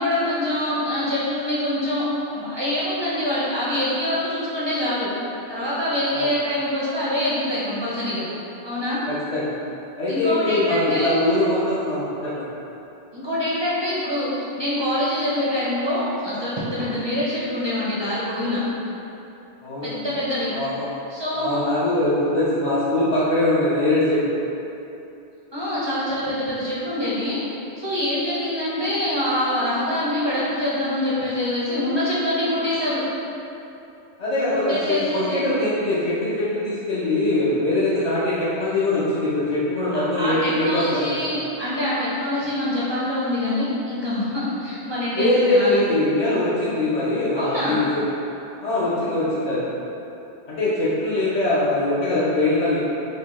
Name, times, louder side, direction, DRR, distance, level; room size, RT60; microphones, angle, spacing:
voice 1, 0.0-5.1 5.5-8.3 8.6-9.0 10.1-11.2 13.1-18.7 19.8-20.5 21.1-21.6 25.5-27.4 27.8-33.0 34.5-35.4 39.9-45.9 47.3-47.8, left 1 dB, 35° right, -9 dB, 0.4 m, -25 dB
voice 2, 10.0-12.5 19.6-19.9 20.5-20.8 21.4-24.2 34.2-41.2 45.1-48.0 48.6-49.7 50.5-52.8, left 2 dB, 50° left, -11 dB, 0.5 m, -22 dB
4.1 x 2.2 x 2.9 m, 2.9 s
omnidirectional pair, 1.2 m